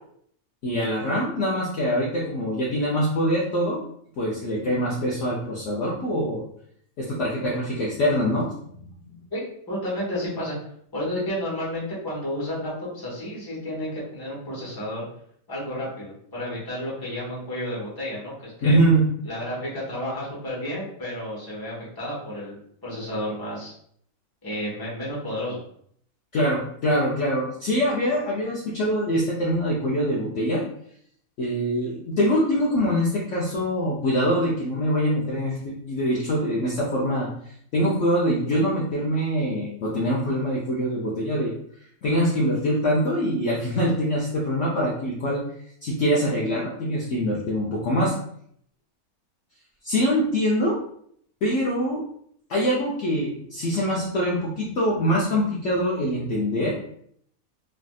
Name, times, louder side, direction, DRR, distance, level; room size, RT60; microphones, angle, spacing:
voice 1, 0.6-3.8 4.2-6.4 7.0-8.5 18.6-19.0 26.3-30.6 31.4-37.3 37.7-41.5 42.0-45.4 45.8-48.1 49.8-50.8 51.4-52.0 52.5-56.8, equal, 65° left, -5 dB, 0.8 m, -24 dB
voice 2, 9.7-10.6 10.9-15.1 15.5-18.8 19.2-23.7 24.4-25.6, left 1 dB, 15° left, -6 dB, 1.0 m, -31 dB
3.3 x 2.6 x 2.3 m, 0.65 s
omnidirectional pair, 1.6 m